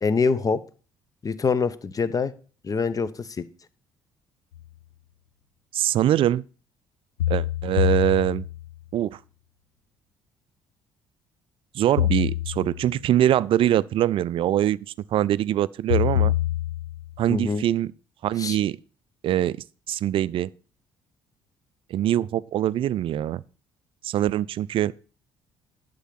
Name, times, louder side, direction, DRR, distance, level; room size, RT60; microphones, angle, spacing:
voice 1, 0.0-0.6 1.2-2.3 2.6-3.3 17.3-17.6 18.4-18.6, left 5 dB, 30° left, 0.8 m, -24 dB
sound 1, 4.5-4.6 7.2-8.8 12.0-13.0 15.9-17.2, left 13 dB, 80° left, 0.4 m, -25 dB
voice 2, 5.7-6.4 7.3-8.4 8.9-9.2 11.7-14.8 15.1-16.3 17.2-17.9 18.2-18.8 19.2-19.6 19.9-20.5 21.9-23.4 24.0-24.9, right 12 dB, 50° right, 0.4 m, -23 dB
11.5 x 5.3 x 5.9 m
figure-of-eight pair, 50°, 12 cm